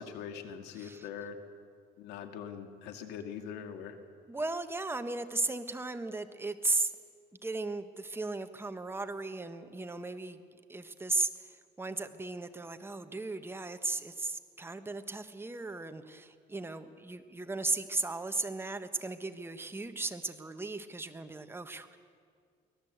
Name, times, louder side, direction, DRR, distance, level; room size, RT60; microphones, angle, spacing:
voice 1, 0.0-1.4 2.0-4.0, left 7 dB, 90° left, 6 dB, 2.1 m, -42 dB
voice 2, 4.3-6.9 7.4-10.4 10.7-22.0, right 3 dB, 15° right, 8 dB, 1.3 m, -36 dB
24.0 x 17.5 x 8.1 m, 2.1 s
cardioid pair, 110°, 17 cm